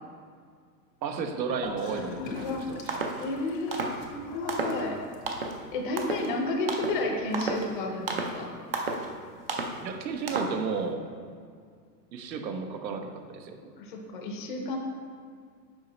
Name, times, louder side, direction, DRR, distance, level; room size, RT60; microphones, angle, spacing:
voice 1, 1.0-2.8 9.8-11.0 12.1-13.6, right 5 dB, 85° right, 6 dB, 1.1 m, -33 dB
Gurgling / Toilet flush, 1.6-5.6, left 3 dB, 85° left, 1.7 m, -41 dB
sound 1, 2.3-2.5 2.9-3.2 3.7-4.0 4.5-4.8 5.3-5.6 6.0-6.3 6.7-7.0 7.3-7.7 8.1-8.4 8.7-9.1 9.5-9.8 10.3-10.6, right 3 dB, 40° right, 0.4 m, -32 dB
voice 2, 3.2-5.0 5.7-8.5 13.8-14.8, left 2 dB, 30° left, 2 dB, 0.6 m, -31 dB
7.7 x 5.2 x 3.9 m, 2.1 s
supercardioid pair, 175°, 50 cm